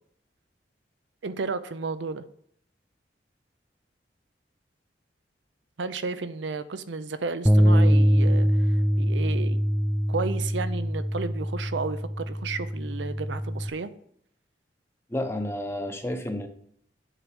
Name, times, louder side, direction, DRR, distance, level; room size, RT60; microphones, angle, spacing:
voice 1, 1.2-2.2 5.8-9.6 10.1-13.9, right 4 dB, 85° right, 12 dB, 0.6 m, -32 dB
Bass guitar, 7.5-13.7, equal, ahead, 0.3 m, -23 dB
voice 2, 15.1-16.5, left 1 dB, 15° left, 6 dB, 0.8 m, -30 dB
7.4 x 4.7 x 7.0 m, 0.68 s
head